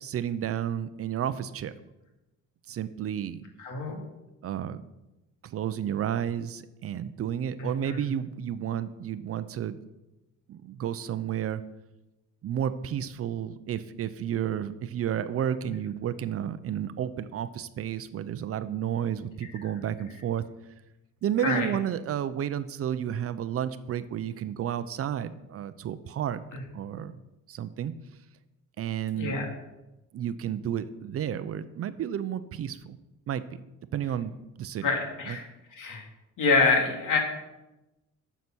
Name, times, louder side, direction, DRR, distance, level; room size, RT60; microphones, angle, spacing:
voice 1, 0.0-1.7 2.7-3.4 4.4-4.8 5.4-9.8 10.5-11.6 12.4-20.5 21.2-26.4 26.7-27.2 27.5-27.9 28.8-29.4 30.1-33.0 33.3-33.6 33.9-34.9 35.3-35.4, right 9 dB, 45° right, 13 dB, 0.5 m, -31 dB
voice 2, 3.6-4.0 7.8-8.0 21.4-21.7 29.1-29.4 34.8-35.4 35.8-36.0 36.4-37.2, left 4 dB, 75° left, 1 dB, 2.5 m, -25 dB
9.6 x 7.1 x 6.1 m, 0.99 s
cardioid pair, 170°, 32 cm